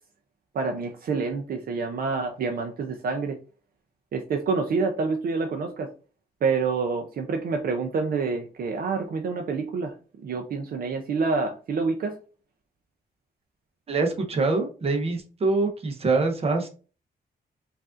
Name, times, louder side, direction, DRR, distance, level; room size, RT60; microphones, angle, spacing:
voice 1, 0.5-3.4 4.1-5.9 6.4-9.9 10.2-12.2, right 4 dB, 60° right, 4 dB, 0.5 m, -27 dB
voice 2, 13.9-16.7, right 3 dB, 35° right, 4 dB, 0.8 m, -24 dB
4.7 x 2.5 x 2.4 m, 0.35 s
wide cardioid pair, 170°, 17 cm